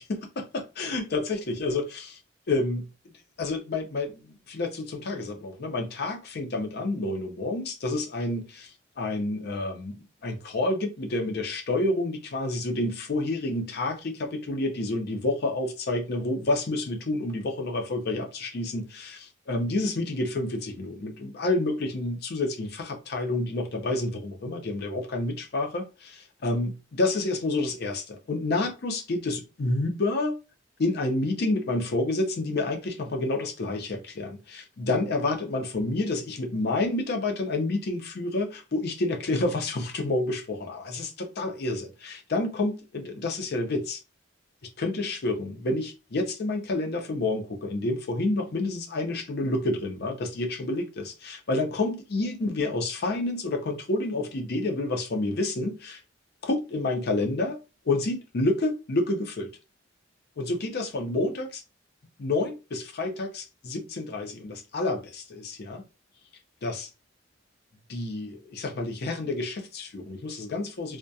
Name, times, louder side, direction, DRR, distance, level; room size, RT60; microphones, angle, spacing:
voice 1, 0.0-2.2 2.5-2.9 3.4-8.7 9.0-30.4 30.8-44.0 44.8-56.0 56.4-57.6 57.9-59.5 60.4-61.6 62.2-65.8 66.6-66.9 67.9-71.0, left 2 dB, 55° left, 0.5 m, -29 dB
2.2 x 2.1 x 2.6 m
head